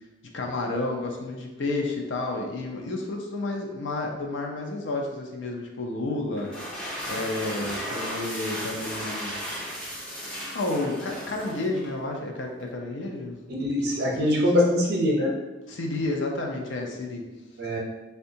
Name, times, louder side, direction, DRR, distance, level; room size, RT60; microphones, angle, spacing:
voice 1, 0.3-6.5 7.1-9.4 10.5-13.4 13.9-14.5 15.7-17.3, left 2 dB, 60° left, 1 dB, 0.5 m, -31 dB
sound 1, 6.4-12.0, equal, 5° left, 0.5 m, -35 dB
voice 2, 13.6-15.3 17.6-17.8, left 1 dB, 50° right, -1 dB, 0.6 m, -23 dB
3.6 x 2.2 x 2.7 m, 1.1 s
head